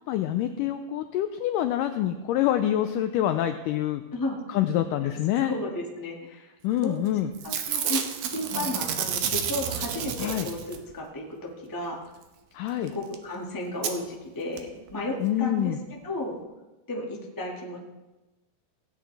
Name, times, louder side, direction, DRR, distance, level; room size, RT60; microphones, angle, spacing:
voice 1, 0.1-4.0 4.5-5.5 6.6-7.3 10.2-10.5 12.5-12.9 15.2-15.8, left 12 dB, 85° left, 8 dB, 1.9 m, -26 dB
voice 2, 5.1-6.5 6.8-7.0 7.4-12.0 12.9-15.7 16.0-16.4 16.9-17.8, left 2 dB, 30° left, -2 dB, 0.3 m, -33 dB
Packing tape duct tape / Tearing, 6.8-7.1 7.3-10.9 12.9-13.0 13.1-13.2 13.8-13.9 14.6-14.7 14.9-15.0, right 8 dB, 70° right, 2.2 m, -30 dB
17.0 x 9.4 x 3.4 m, 1.1 s
omnidirectional pair, 4.3 m